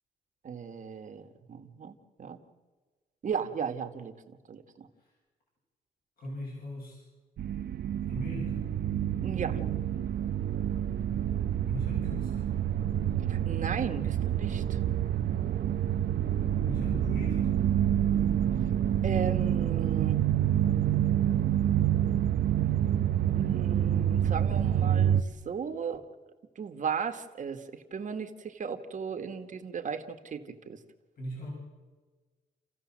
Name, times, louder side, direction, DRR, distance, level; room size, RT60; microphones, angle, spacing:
voice 1, 0.4-2.4 3.2-4.9 9.2-9.6 13.3-14.8 19.0-20.2 23.4-25.2 25.5-26.1 26.6-30.8, right 6 dB, 50° right, 6 dB, 1.9 m, -36 dB
voice 2, 6.2-7.0 8.1-8.7 11.6-12.5 16.6-17.6 31.2-31.5, equal, 65° left, -2 dB, 7.4 m, -39 dB
sound 1, 7.4-25.2, right 10 dB, 85° right, 0.9 m, -27 dB
29.5 x 15.5 x 7.6 m, 1.3 s
wide cardioid pair, 140°, 16 cm